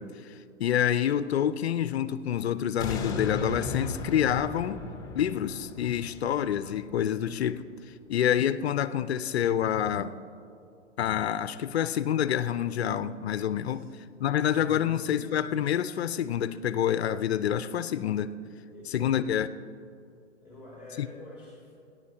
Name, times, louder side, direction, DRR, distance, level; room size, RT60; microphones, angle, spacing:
voice 1, 0.0-4.8 5.1-7.6 8.1-10.2 11.0-13.9 14.2-18.3 18.9-19.5 21.0-21.1, left 10 dB, 55° left, 14 dB, 0.6 m, -27 dB
sound 1, 2.8-7.9 8.4-8.5, left 3 dB, 10° left, 1.1 m, -37 dB
voice 2, 13.6-14.0 14.6-14.9 18.7-19.1 20.4-21.7, left 2 dB, 5° right, -5 dB, 2.5 m, -46 dB
29.0 x 10.5 x 2.8 m, 2.5 s
figure-of-eight pair, 125°, 37 cm